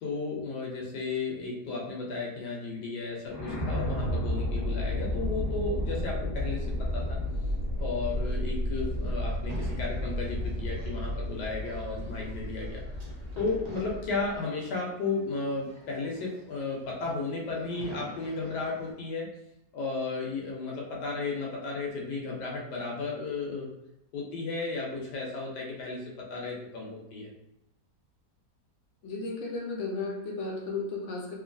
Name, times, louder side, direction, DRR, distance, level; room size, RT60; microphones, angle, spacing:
voice 1, 0.0-6.7 6.9-7.2 7.8-12.8 13.3-19.3 19.7-23.7 24.1-27.3, left 3 dB, 80° left, -2 dB, 1.3 m, -34 dB
sound 1, 3.3-14.4, left 1 dB, 15° right, 0.8 m, -32 dB
sound 2, 6.4-18.9, right 1 dB, 90° right, 0.3 m, -50 dB
voice 2, 29.0-31.3, left 3 dB, 60° left, -1 dB, 0.8 m, -34 dB
3.0 x 2.5 x 2.5 m, 0.87 s
omnidirectional pair, 1.7 m